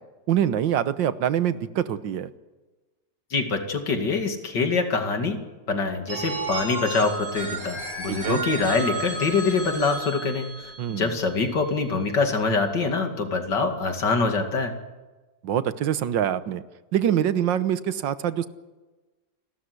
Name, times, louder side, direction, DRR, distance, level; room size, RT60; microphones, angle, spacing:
voice 1, 0.3-2.3 8.1-8.4 10.8-11.2 15.4-16.6 16.9-18.5, right 10 dB, 90° right, 13 dB, 1.7 m, -24 dB
voice 2, 3.3-5.4 5.7-14.7, left 4 dB, 70° left, 5 dB, 3.0 m, -25 dB
Telephone, 6.1-11.9, right 3 dB, 65° right, 5.6 m, -33 dB
28.5 x 13.0 x 9.6 m, 1.2 s
omnidirectional pair, 1.9 m